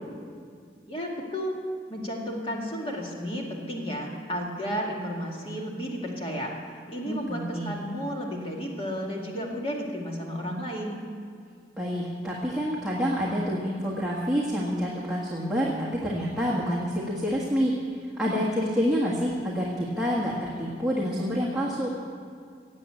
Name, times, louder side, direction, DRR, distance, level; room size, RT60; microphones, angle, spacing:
voice 1, 0.9-1.5 1.9-6.5 6.9-11.0, equal, 30° left, -1 dB, 2.2 m, -33 dB
voice 2, 7.0-7.8 11.8-17.8 18.2-21.9, equal, ahead, -7 dB, 1.6 m, -28 dB
17.5 x 7.7 x 8.3 m, 2.2 s
head